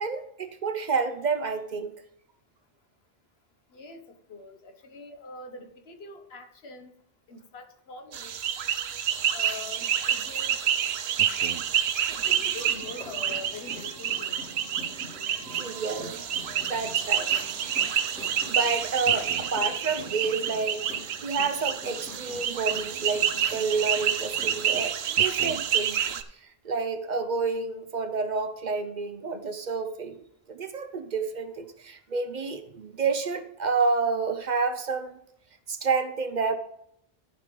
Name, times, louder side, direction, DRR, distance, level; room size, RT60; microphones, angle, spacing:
voice 1, 0.0-1.9 15.6-16.2 16.6-17.3 18.5-20.9 21.2-26.1 26.4-30.2 30.5-35.2 35.7-36.5, right 4 dB, 50° right, 9 dB, 0.7 m, -29 dB
voice 2, 3.7-6.9 7.3-8.4 9.3-10.6 12.1-14.5, left 3 dB, 80° left, 6 dB, 1.3 m, -43 dB
sound 1, 8.1-26.2, right 9 dB, 90° right, 0.9 m, -28 dB
sound 2, 12.1-24.8, left 1 dB, 10° left, 3.0 m, -45 dB
14.0 x 5.0 x 3.8 m, 0.73 s
omnidirectional pair, 1.0 m